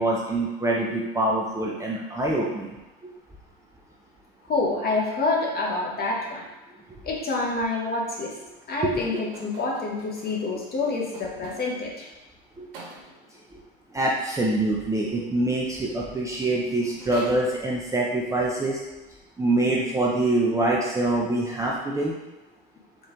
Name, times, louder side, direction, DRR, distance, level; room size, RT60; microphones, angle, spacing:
voice 1, 0.0-2.8 8.8-8.9 12.6-12.7 13.9-18.8 19.4-22.1, right 2 dB, 10° right, -4 dB, 0.5 m, -25 dB
voice 2, 4.5-6.4 7.0-8.3 8.7-12.1, left 3 dB, 35° left, -2 dB, 1.1 m, -27 dB
sound 1, 8.9-11.9 12.7-13.4 16.0-16.1 16.4-18.0, right 3 dB, 65° right, 1.2 m, -45 dB
4.2 x 2.5 x 3.6 m, 1.1 s
hypercardioid pair, 90°, 29 cm